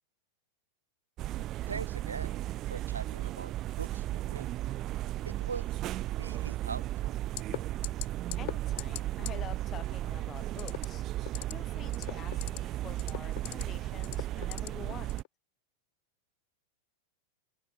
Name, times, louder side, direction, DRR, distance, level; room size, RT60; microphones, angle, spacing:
sound 1, 1.2-15.2, right 14 dB, 35° right, 1.4 m, -35 dB
voice 1, 1.3-2.4 2.7-3.5 3.8-4.5 5.2-5.8 6.1-7.1, right 5 dB, 75° right, 2.3 m, -42 dB
sound 2, 7.4-7.6 7.8-8.1 8.3-8.5 8.8-9.0 9.3-9.4 10.6-10.9 11.2-11.5 11.9-12.6 13.0-13.6 14.0-14.7 15.1-15.3, left 20 dB, 50° left, 5.0 m, -37 dB
voice 2, 8.4-11.0 11.5-15.1, left 10 dB, 30° left, 6.5 m, -47 dB
figure-of-eight pair, 90°, 0 cm